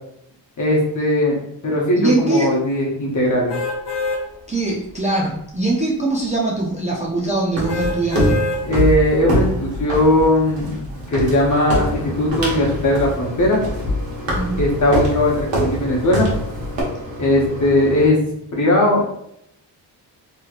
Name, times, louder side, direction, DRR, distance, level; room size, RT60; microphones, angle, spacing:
voice 1, 0.6-1.4 1.6-3.5 8.6-10.8 11.1-13.6 14.6-16.3 17.2-18.2 18.5-19.0, left 1 dB, 40° left, -2 dB, 0.9 m, -18 dB
voice 2, 2.0-2.6 4.5-8.3 14.3-14.6, right 2 dB, 20° right, -3 dB, 0.3 m, -22 dB
sound 1, 3.5-4.2 4.8-4.9 7.7-8.6 9.2-9.3, left 3 dB, 65° left, 0.8 m, -24 dB
sound 2, 7.5-16.8, equal, 70° right, 1.1 m, -24 dB
Mechanisms, 11.8-18.1, left 1 dB, 45° right, 1.4 m, -33 dB
3.0 x 3.0 x 2.4 m, 0.74 s
wide cardioid pair, 165°, 43 cm